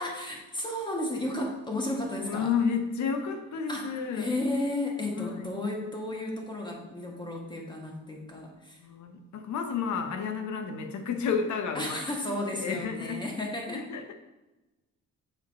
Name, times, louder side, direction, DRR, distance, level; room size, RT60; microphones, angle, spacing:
voice 1, 0.0-2.5 3.7-8.8 11.7-13.8, left 1 dB, 15° left, 0 dB, 1.7 m, -33 dB
voice 2, 2.3-4.3 5.1-5.3 8.8-12.0 12.6-13.2 13.7-14.1, left 6 dB, 70° left, 7 dB, 0.9 m, -31 dB
6.7 x 4.8 x 4.3 m, 1.1 s
cardioid pair, 90°, 30 cm